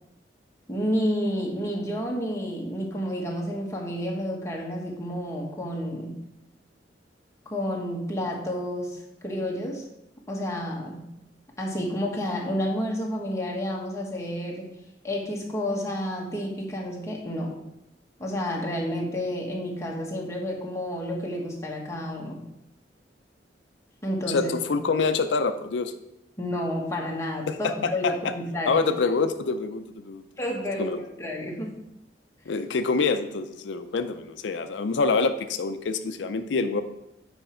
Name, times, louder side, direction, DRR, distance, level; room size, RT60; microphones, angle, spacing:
voice 1, 0.7-6.2 7.4-9.8 10.3-11.1 11.6-14.7 15.0-17.6 18.2-22.4 24.0-24.5 26.4-28.9 30.4-31.8, equal, 15° left, -1 dB, 1.3 m, -30 dB
voice 2, 24.3-25.9 27.5-28.3 28.7-30.2 30.8-31.0 32.5-36.8, left 4 dB, 75° left, 9 dB, 0.5 m, -26 dB
7.7 x 5.1 x 4.3 m, 0.84 s
head